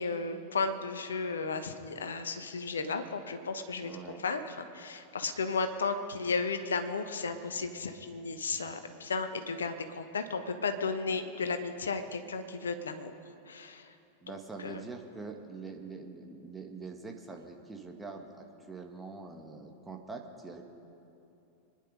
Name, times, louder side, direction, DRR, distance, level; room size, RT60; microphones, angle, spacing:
voice 1, 0.0-13.1 13.5-13.9 14.6-14.8, left 4 dB, 70° left, 9 dB, 1.1 m, -34 dB
voice 2, 3.8-4.2 14.2-20.6, right 4 dB, 10° right, 2 dB, 1.8 m, -44 dB
25.5 x 10.5 x 5.3 m, 2.8 s
figure-of-eight pair, 90°, 0 cm